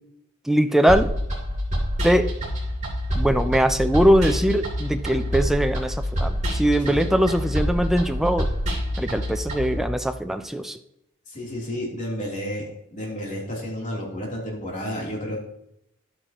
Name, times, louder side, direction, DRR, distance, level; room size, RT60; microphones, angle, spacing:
voice 1, 0.5-1.1 2.0-2.3 3.1-8.5 9.0-10.8, equal, ahead, 7 dB, 0.4 m, -21 dB
sound 1, 0.9-9.8, equal, 35° right, 3.2 m, -27 dB
voice 2, 11.3-15.4, equal, 40° left, -3 dB, 3.2 m, -31 dB
11.5 x 9.1 x 3.0 m, 0.79 s
head